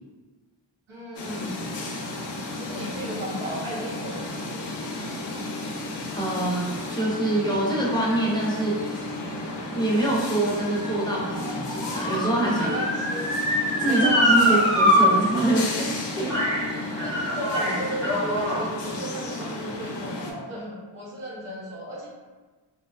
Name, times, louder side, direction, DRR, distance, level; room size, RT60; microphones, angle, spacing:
voice 1, 0.9-1.7 2.5-4.7 12.6-13.3 13.9-14.6 17.0-22.1, equal, 80° right, -5 dB, 1.0 m, -35 dB
sound 1, 1.2-20.3, left 2 dB, 60° left, 0.5 m, -33 dB
voice 2, 6.1-9.0 9.6-12.7 13.8-16.4, right 1 dB, 10° left, -5 dB, 0.6 m, -25 dB
Motor vehicle (road) / Siren, 9.8-15.0 15.3-15.4 16.3-16.6 17.0-18.6 19.3-19.4, equal, 65° right, 1.5 m, -24 dB
3.2 x 2.6 x 2.4 m, 1.3 s
wide cardioid pair, 165°, 48 cm